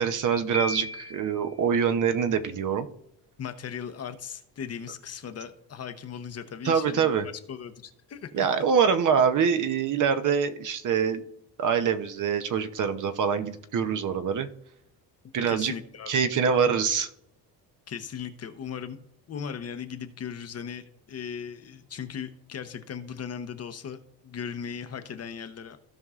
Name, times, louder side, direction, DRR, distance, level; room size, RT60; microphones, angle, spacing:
voice 1, 0.0-2.9 6.6-7.3 8.3-11.2 11.6-14.5 15.3-15.7 16.1-17.1, right 7 dB, 45° right, 10 dB, 0.8 m, -24 dB
Piano, 0.5-1.5, equal, 5° left, 0.7 m, -34 dB
voice 2, 3.4-8.5 15.5-16.1 17.9-19.0 19.3-25.8, left 7 dB, 35° left, 8 dB, 0.8 m, -38 dB
16.0 x 5.3 x 2.4 m, 0.77 s
cardioid pair, 125°, 43 cm